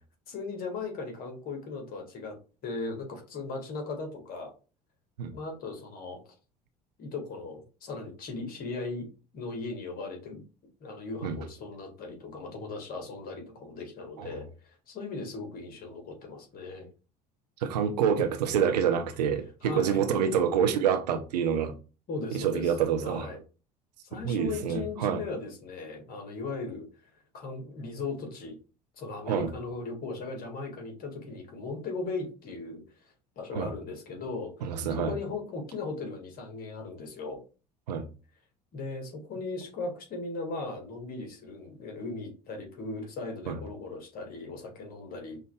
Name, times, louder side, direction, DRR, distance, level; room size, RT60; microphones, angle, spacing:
voice 1, 0.3-2.4 2.6-4.5 5.3-6.2 7.0-9.1 9.3-10.4 10.8-16.9 19.6-20.0 22.1-22.7 23.0-23.4 24.0-26.9 27.3-28.5 29.0-32.8 33.3-34.7 35.0-37.4 38.7-45.4, left 3 dB, 45° left, 1.6 m, -38 dB
voice 2, 17.6-21.7 22.3-23.3 24.2-25.2 29.3-29.5 33.5-33.7 34.6-35.1 37.9-38.1 43.5-43.6, right 7 dB, 70° right, 0.6 m, -27 dB
5.6 x 2.5 x 2.2 m
figure-of-eight pair, 65°, 21 cm